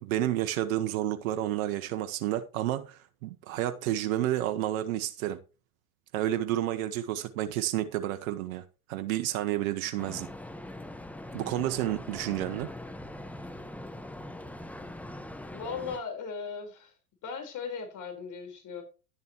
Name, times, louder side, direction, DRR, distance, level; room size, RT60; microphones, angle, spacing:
voice 1, 0.0-5.4 6.1-8.6 8.9-10.3 11.3-12.7, right 13 dB, 70° right, 1.2 m, -30 dB
sound 1, 10.0-16.0, left 1 dB, 5° left, 1.2 m, -42 dB
voice 2, 15.5-16.9 17.2-18.8, left 5 dB, 45° left, 4.2 m, -37 dB
11.5 x 10.5 x 3.0 m
hypercardioid pair, 80°, 43 cm